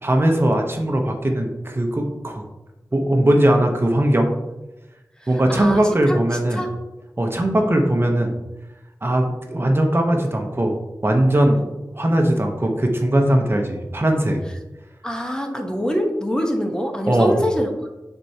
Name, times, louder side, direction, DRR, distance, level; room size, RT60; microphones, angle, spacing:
voice 1, 0.0-2.4 2.9-4.3 5.3-6.6 7.2-8.3 9.0-10.8 11.0-11.6 11.9-14.4 17.1-17.4, right 1 dB, 35° right, 2 dB, 0.8 m, -19 dB
voice 2, 5.5-5.8 6.1-6.2 6.6-6.7 15.0-17.9, equal, 10° left, 2 dB, 1.0 m, -24 dB
9.6 x 4.5 x 2.8 m, 1.0 s
wide cardioid pair, 70°, 7 cm